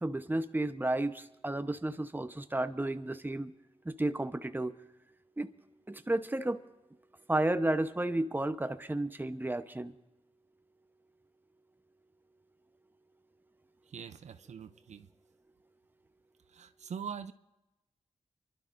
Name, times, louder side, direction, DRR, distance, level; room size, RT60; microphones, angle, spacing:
voice 1, 0.0-3.5 3.8-4.8 5.4-5.5 5.9-6.6 7.3-9.9, right 1 dB, 15° right, 10 dB, 0.9 m, -32 dB
voice 2, 13.9-15.1 16.5-17.3, right 7 dB, 80° right, 11 dB, 0.5 m, -43 dB
29.5 x 12.0 x 2.6 m, 0.99 s
cardioid pair, 45°, 12 cm